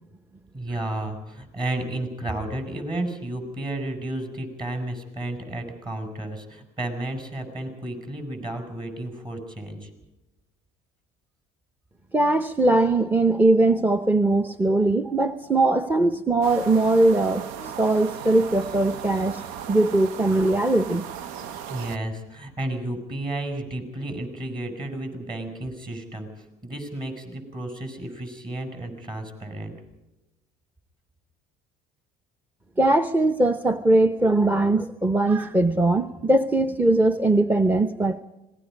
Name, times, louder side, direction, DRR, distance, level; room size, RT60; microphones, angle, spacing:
voice 1, 0.5-9.9 21.7-29.7, right 1 dB, 30° right, 5 dB, 6.9 m, -32 dB
voice 2, 12.1-19.4 19.7-21.1 32.8-38.2, right 2 dB, 10° right, 10 dB, 0.9 m, -20 dB
sound 1, 16.4-22.0, right 9 dB, 85° right, 0.7 m, -37 dB
26.0 x 19.5 x 5.3 m, 1.0 s
supercardioid pair, 95°, 14 cm